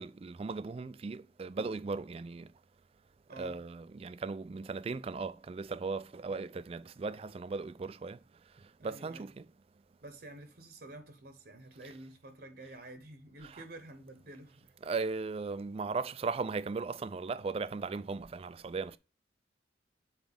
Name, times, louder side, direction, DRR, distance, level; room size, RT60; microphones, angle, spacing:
voice 1, 0.0-2.5 3.3-8.2 8.8-9.5 13.4-13.6 14.8-19.0, right 4 dB, 30° right, 0.3 m, -37 dB
voice 2, 3.3-3.6 8.8-9.3 10.0-14.7, right 2 dB, 55° right, 0.9 m, -50 dB
7.2 x 4.4 x 3.4 m
head